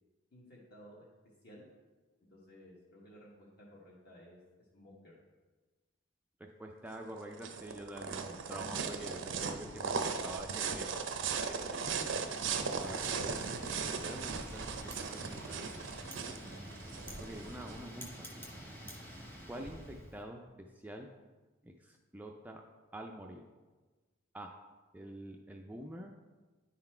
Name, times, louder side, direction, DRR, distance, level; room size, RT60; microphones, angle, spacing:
voice 1, 0.3-1.1 1.4-1.7 2.3-5.2 9.5-9.9, equal, 50° left, -5 dB, 1.1 m, -56 dB
voice 2, 6.6-11.9 12.8-15.7 16.4-16.8 17.2-18.5 19.5-21.1 21.6-22.6 22.9-23.5 24.3-24.5 24.9-26.1, right 1 dB, 10° right, 1 dB, 0.3 m, -47 dB
sound 1, 6.9-17.8, right 5 dB, 60° right, 0.5 m, -38 dB
Wind, 12.0-20.2, equal, 10° left, 0.8 m, -48 dB
9.7 x 4.0 x 4.3 m, 1.3 s
head